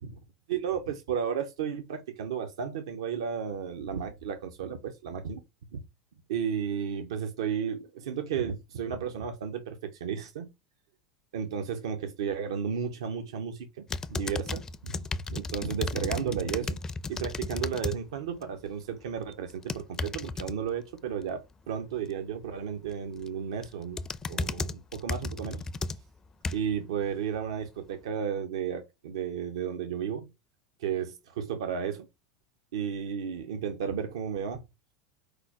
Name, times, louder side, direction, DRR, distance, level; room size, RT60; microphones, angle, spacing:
voice 1, 0.5-5.4 5.7-5.8 6.3-10.5 11.3-13.8 14.1-16.8 17.1-24.0 24.3-25.6 26.5-30.3 30.8-32.1 32.7-34.6, right 7 dB, 85° right, 0.6 m, -33 dB
sound 1, 13.9-18.0 18.4-18.7 19.5-20.5 22.9-23.3 23.6-26.8 27.4-27.5, left 3 dB, 20° left, 0.4 m, -34 dB
4.8 x 2.0 x 4.6 m
hypercardioid pair, 105°, 3 cm